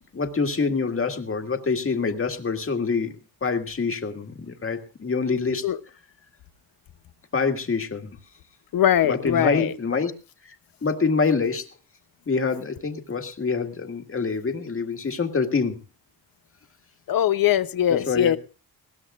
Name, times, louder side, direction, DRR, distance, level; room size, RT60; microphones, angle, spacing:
voice 1, 0.1-3.2 3.4-5.7 7.3-8.2 9.0-10.1 10.4-10.6 10.8-11.7 12.3-15.8 17.9-18.4, left 4 dB, 35° left, 5 dB, 1.9 m, -25 dB
voice 2, 8.7-9.7 17.1-18.4, left 11 dB, 65° left, 14 dB, 0.9 m, -21 dB
21.0 x 17.0 x 2.5 m, 0.34 s
cardioid pair, 95°, 38 cm